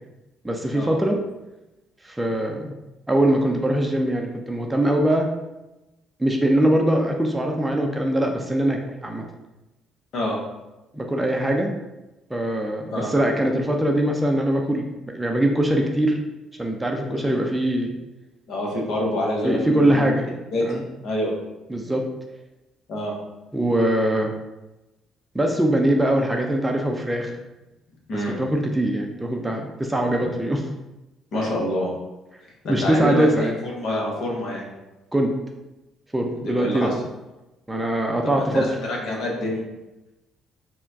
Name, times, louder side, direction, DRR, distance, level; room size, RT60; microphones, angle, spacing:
voice 1, 0.4-1.2 2.0-2.8 3.1-5.3 6.2-9.2 10.9-11.7 12.3-16.2 16.6-17.9 19.4-20.3 20.6-20.8 21.7-22.1 23.5-24.3 25.3-27.3 28.4-30.6 32.7-33.5 35.1-35.3 36.1-36.9 37.7-38.6, right 1 dB, 10° right, 2 dB, 0.5 m, -22 dB
voice 2, 18.5-20.0 20.5-21.3 22.9-23.1 28.1-28.4 30.2-30.3 31.3-31.9 32.6-34.7 36.4-36.9 38.2-39.6, left 1 dB, 55° left, -1 dB, 1.0 m, -27 dB
4.4 x 2.2 x 3.5 m, 1.0 s
figure-of-eight pair, 45°, 0 cm